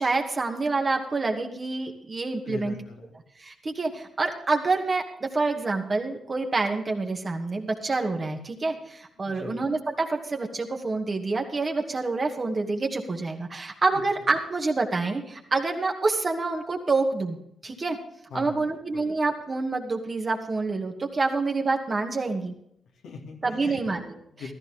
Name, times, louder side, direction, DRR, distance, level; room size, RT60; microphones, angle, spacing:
voice 1, 0.0-2.7 3.4-17.4 17.6-18.0 18.3-22.5 23.4-24.2, right 3 dB, 40° right, 2 dB, 2.4 m, -27 dB
voice 2, 2.4-3.1 8.3-8.4 9.2-9.6 18.3-18.6 18.9-19.1 23.0-23.8 24.3-24.5, left 4 dB, 75° left, 0 dB, 2.3 m, -40 dB
15.0 x 13.5 x 3.7 m, 0.72 s
hypercardioid pair, 40°, 0 cm